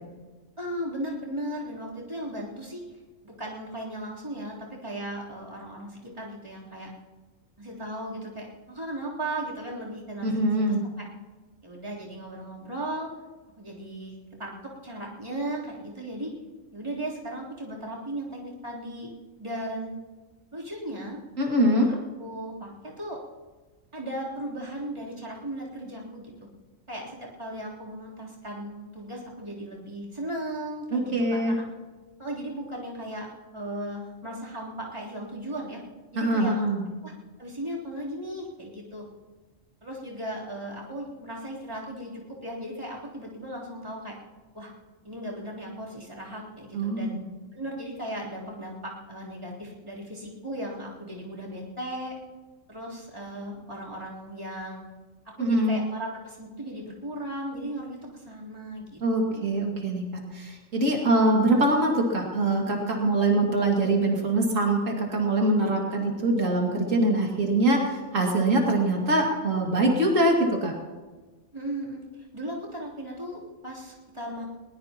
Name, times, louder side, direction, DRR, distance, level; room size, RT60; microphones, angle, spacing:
voice 1, 0.6-2.8 3.2-6.9 7.6-11.1 11.6-13.1 13.6-14.1 14.4-16.3 16.7-19.1 19.4-19.9 20.5-21.2 21.7-21.9 22.2-23.2 23.9-26.5 26.9-31.6 32.2-33.3 33.5-35.8 36.1-36.7 37.0-37.1 37.4-39.1 39.8-44.2 44.5-44.7 45.0-47.2 47.5-52.2 52.7-54.8 55.2-59.5 71.5-74.4, right 1 dB, 20° right, -5 dB, 3.6 m, -36 dB
voice 2, 10.2-10.8 21.4-21.9 30.9-31.6 36.2-36.8 46.7-47.2 55.4-55.8 59.0-70.7, right 1 dB, 80° right, -1 dB, 2.7 m, -23 dB
21.5 x 19.0 x 3.0 m, 1.3 s
omnidirectional pair, 1.3 m